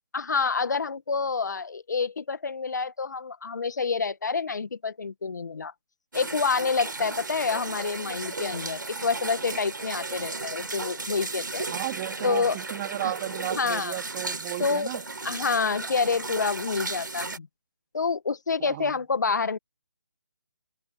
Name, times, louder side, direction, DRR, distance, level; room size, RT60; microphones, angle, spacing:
voice 1, 0.1-5.7 6.1-11.6 12.2-12.6 13.0-13.1 13.5-14.0 14.6-14.9 15.2-17.5 17.9-19.6, left 5 dB, 60° left, 1.8 m, -28 dB
sound 1, 6.1-17.4, right 3 dB, 75° right, 3.6 m, -35 dB
voice 2, 11.7-15.0 18.6-18.9, right 17 dB, 25° right, 3.5 m, -34 dB
open air
figure-of-eight pair, 155°, 11 cm